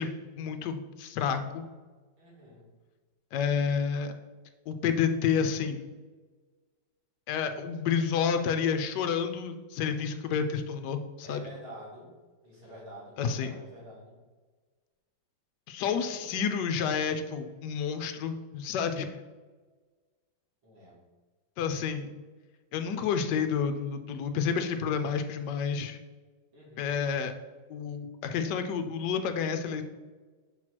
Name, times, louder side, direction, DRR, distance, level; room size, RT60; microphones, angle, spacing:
voice 1, 0.0-1.7 3.3-4.1 4.7-5.9 7.3-11.4 13.2-13.5 15.7-19.1 21.6-22.1 22.7-26.0 26.8-27.3 27.7-29.8, left 6 dB, 70° left, 8 dB, 1.1 m, -30 dB
voice 2, 2.2-2.7 11.2-12.1 12.4-14.2 20.6-21.0 26.5-27.0, equal, 90° right, -6 dB, 2.9 m, -48 dB
6.0 x 3.1 x 5.8 m, 1.3 s
omnidirectional pair, 2.1 m